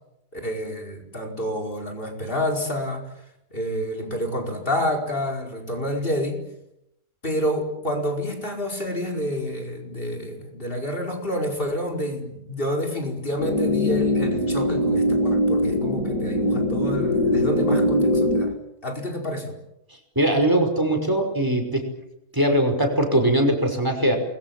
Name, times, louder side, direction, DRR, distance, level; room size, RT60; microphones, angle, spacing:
voice 1, 0.3-3.1 3.5-6.4 7.2-18.5 18.8-19.6, equal, 35° left, 2 dB, 5.2 m, -28 dB
sound 1, 13.4-18.4, left 1 dB, 50° left, 5.9 m, -22 dB
voice 2, 20.2-21.9 22.3-24.2, right 1 dB, 10° right, 5 dB, 5.6 m, -21 dB
28.5 x 22.0 x 7.5 m, 0.83 s
omnidirectional pair, 1.6 m